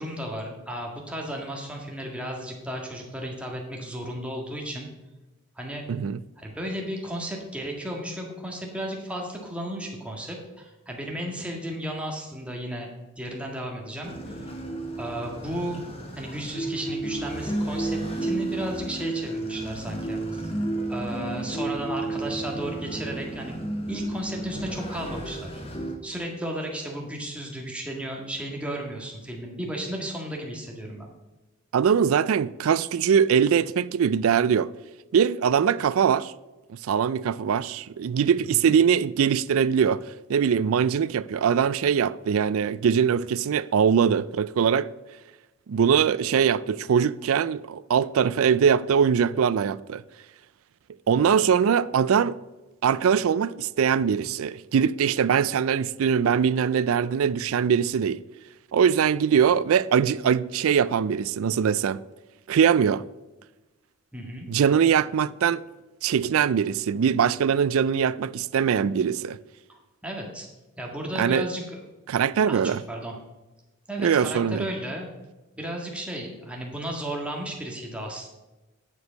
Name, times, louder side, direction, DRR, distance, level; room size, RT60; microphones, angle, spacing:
voice 1, 0.0-4.9 5.5-5.8 6.4-12.9 13.2-14.5 15.0-15.8 16.1-20.6 20.9-23.5 23.9-25.6 26.0-31.1 38.5-38.7 64.1-64.5 69.7-70.5 70.8-71.8 72.5-73.1 73.9-75.1 75.6-78.3, right 1 dB, 5° right, 1.7 m, -34 dB
voice 2, 5.9-6.2 31.7-34.7 35.1-36.3 36.8-40.0 40.3-44.9 45.7-50.0 51.1-52.4 52.8-58.2 58.7-62.0 62.5-63.0 64.5-65.6 66.0-69.4 71.2-71.5 72.1-72.8 74.0-74.7, right 7 dB, 80° right, 0.4 m, -22 dB
sound 1, 14.0-26.0, right 2 dB, 25° left, 1.4 m, -32 dB
9.9 x 6.3 x 5.2 m
head